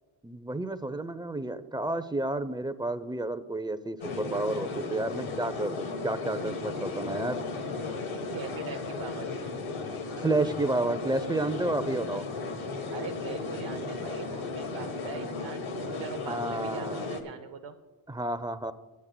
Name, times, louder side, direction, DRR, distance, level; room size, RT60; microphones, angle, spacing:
voice 1, 0.2-7.4 10.2-12.3 16.3-17.1 18.1-18.7, right 2 dB, 10° right, 13 dB, 0.4 m, -31 dB
sound 1, 4.0-17.2, left 3 dB, 75° left, 1.4 m, -35 dB
voice 2, 8.3-9.3 12.9-17.7, right 7 dB, 65° right, 5 dB, 0.7 m, -42 dB
25.0 x 8.4 x 2.2 m, 1.3 s
cardioid pair, 85°, 49 cm